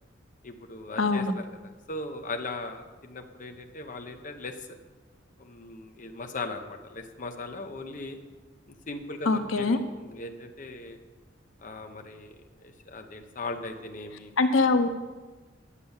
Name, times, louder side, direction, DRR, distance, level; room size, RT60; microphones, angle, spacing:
voice 1, 0.4-4.8 5.4-8.2 8.7-11.0 11.6-14.3, left 2 dB, 40° left, 4 dB, 0.8 m, -39 dB
voice 2, 1.0-1.3 9.3-9.8 14.4-14.9, left 3 dB, 85° left, 8 dB, 0.8 m, -23 dB
9.9 x 6.7 x 7.1 m, 1.3 s
head